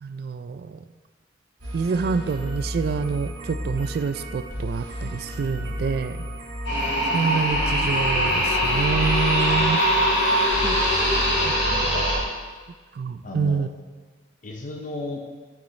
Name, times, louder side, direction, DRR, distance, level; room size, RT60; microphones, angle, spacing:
voice 1, 0.0-0.8 1.7-6.2 7.1-9.8 11.4-11.6 11.8-12.0 13.0-13.7, right 5 dB, 55° right, 12 dB, 0.3 m, -27 dB
sound 1, 1.6-12.2, equal, 85° right, 2.6 m, -32 dB
sound 2, 6.6-12.2, equal, 70° left, 2.5 m, -22 dB
voice 2, 10.6-11.3 11.7-12.1 13.2-13.7 14.4-15.2, left 2 dB, 40° left, 1 dB, 0.5 m, -35 dB
8.7 x 7.2 x 3.2 m, 1.4 s
head